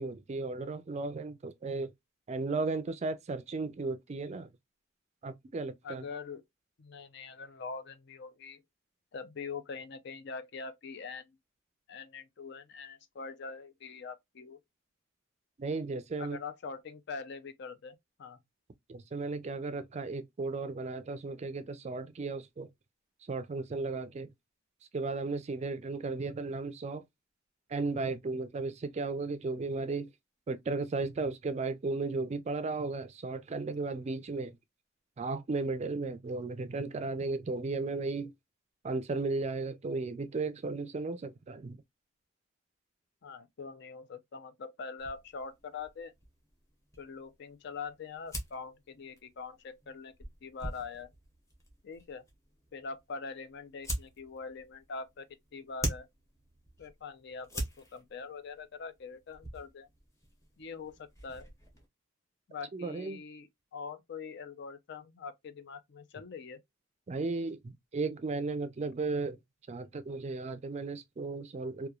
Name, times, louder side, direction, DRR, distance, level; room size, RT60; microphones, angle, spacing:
voice 1, 0.0-1.9 2.3-4.5 5.2-6.0 15.6-16.4 18.9-22.7 23.3-24.3 24.9-27.0 27.7-30.1 30.5-34.6 35.2-38.3 38.8-41.8 62.7-63.2 67.1-69.4 69.7-71.9, right 3 dB, 35° right, 0.4 m, -35 dB
voice 2, 5.8-6.4 6.8-8.6 9.1-11.4 11.9-14.6 16.2-18.4 43.2-46.1 47.0-50.1 50.4-51.1 51.8-52.2 52.7-55.3 55.5-56.1 56.8-59.9 60.6-61.5 62.5-66.6, left 5 dB, 60° left, 0.4 m, -43 dB
sound 1, 45.0-61.9, equal, 15° left, 0.8 m, -44 dB
2.9 x 2.2 x 2.2 m
head